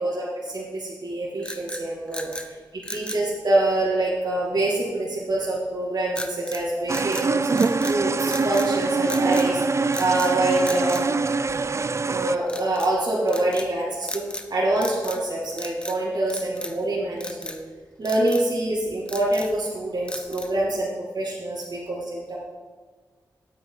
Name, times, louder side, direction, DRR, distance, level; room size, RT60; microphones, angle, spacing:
voice 1, 0.0-7.4 7.8-11.0 12.1-14.2 14.5-17.6 18.0-20.9 21.1-22.4, right 1 dB, 60° right, -6 dB, 2.2 m, -25 dB
sound 1, 1.4-2.5 2.8-3.3 6.1-6.6 6.9-8.0 8.3-8.7 9.1-9.5 9.9-10.3 10.6-11.8 12.5-12.9 13.3-13.7 14.0-14.5 14.8-15.3 15.5-16.0 16.3-16.8 17.2-17.6 18.0-18.5 18.9-19.6 20.1-20.6, left 1 dB, 15° left, 1.0 m, -36 dB
sound 2, 6.9-12.4, right 4 dB, 35° right, 0.4 m, -24 dB
9.4 x 8.4 x 3.9 m, 1.5 s
cardioid pair, 45°, 8 cm